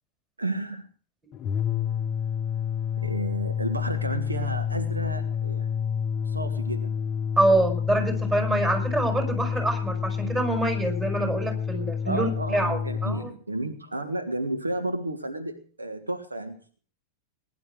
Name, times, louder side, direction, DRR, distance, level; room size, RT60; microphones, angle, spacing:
voice 1, 0.4-0.8 3.0-5.8 6.2-6.9 12.0-16.8, right 2 dB, 80° right, 8 dB, 1.7 m, -32 dB
sound 1, 1.3-13.3, left 7 dB, 30° left, 0.9 m, -29 dB
voice 2, 7.4-13.3, right 2 dB, 15° right, 5 dB, 5.6 m, -25 dB
20.5 x 11.0 x 4.9 m, 0.43 s
figure-of-eight pair, 90°, 0 cm